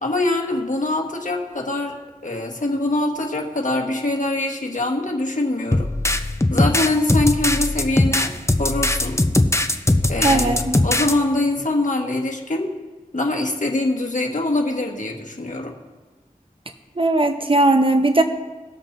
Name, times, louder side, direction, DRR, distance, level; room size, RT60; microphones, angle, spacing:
voice 1, 0.0-5.9 6.5-8.3 8.6-9.2 10.1-12.7 13.1-15.8, left 2 dB, 60° left, 1 dB, 1.4 m, -23 dB
sound 1, 5.7-11.1, left 1 dB, 20° left, 0.6 m, -20 dB
voice 2, 10.2-10.8 17.0-18.2, right 2 dB, 35° right, 5 dB, 0.7 m, -18 dB
19.0 x 7.3 x 2.6 m, 1.3 s
wide cardioid pair, 45°, 15 cm